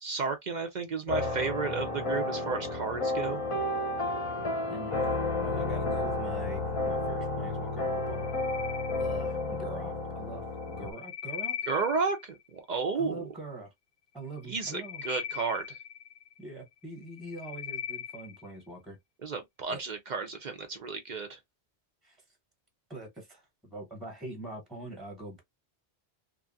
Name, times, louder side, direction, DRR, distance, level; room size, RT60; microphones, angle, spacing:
voice 1, 0.0-3.4 11.7-13.3 14.5-15.8 19.2-21.4, right 4 dB, 55° right, 0.6 m, -32 dB
sound 1, 1.1-10.9, left 2 dB, 35° left, 0.7 m, -31 dB
voice 2, 5.4-8.3 9.0-11.6 12.9-13.7 14.1-15.0 16.4-19.0 19.7-19.8 22.0-22.2 22.9-25.4, right 2 dB, ahead, 1.0 m, -43 dB
sound 2, 7.9-9.6 10.6-12.4 14.4-16.5 17.0-18.5, left 8 dB, 70° left, 0.8 m, -40 dB
3.0 x 2.4 x 2.5 m
omnidirectional pair, 1.1 m